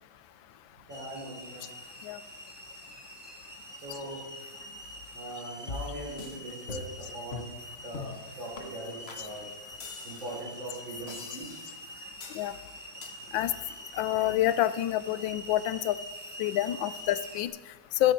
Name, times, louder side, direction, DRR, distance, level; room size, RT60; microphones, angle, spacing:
sound 1, 0.9-17.4, equal, 15° right, 1.2 m, -45 dB
voice 1, 0.9-1.6 3.8-4.2 5.1-9.5 10.0-11.6 13.3-13.4, right 1 dB, 75° right, -3 dB, 4.8 m, -41 dB
sound 2, 5.7-6.4 6.7-7.0 7.3-7.6 7.9-8.2 8.6-8.7 9.1-9.2 9.8-10.4 11.1-11.8 12.2-12.5 13.0-13.1, left 4 dB, 40° left, 1.1 m, -41 dB
voice 2, 13.9-16.0 16.4-18.1, left 13 dB, 90° left, 15 dB, 1.4 m, -28 dB
13.5 x 13.5 x 4.5 m, 1.3 s
omnidirectional pair, 2.1 m